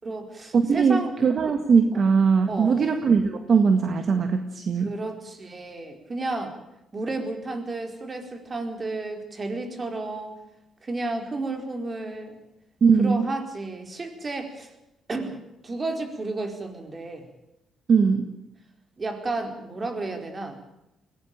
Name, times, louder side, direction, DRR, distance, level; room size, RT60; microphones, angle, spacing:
voice 1, 0.0-1.1 1.9-2.0 2.5-2.8 4.8-6.6 6.9-10.4 10.8-12.4 13.0-14.7 15.1-15.4 15.6-17.3 19.0-20.6, right 2 dB, 30° right, 5 dB, 4.6 m, -32 dB
voice 2, 0.5-4.9 12.8-13.3 17.9-18.3, right 5 dB, 50° right, 7 dB, 1.8 m, -20 dB
21.0 x 18.0 x 9.0 m, 0.87 s
cardioid pair, 90°, 0 cm